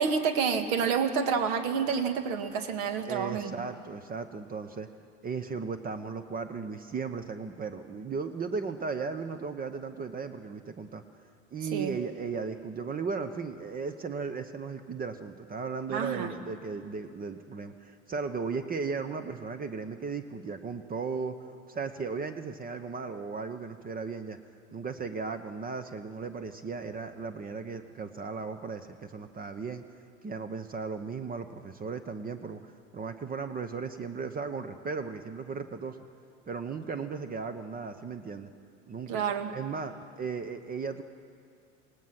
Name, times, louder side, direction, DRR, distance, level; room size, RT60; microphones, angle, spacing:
voice 1, 0.0-3.5 11.7-12.0 15.9-16.3 39.1-39.5, right 6 dB, 55° right, 8 dB, 1.8 m, -28 dB
voice 2, 3.1-4.9 5.2-11.0 11.5-24.4 24.7-29.8 30.2-36.0 36.5-38.5 38.9-39.2 39.5-41.0, right 5 dB, 20° right, 9 dB, 1.0 m, -36 dB
27.5 x 18.5 x 6.0 m, 2.3 s
figure-of-eight pair, 75°, 38 cm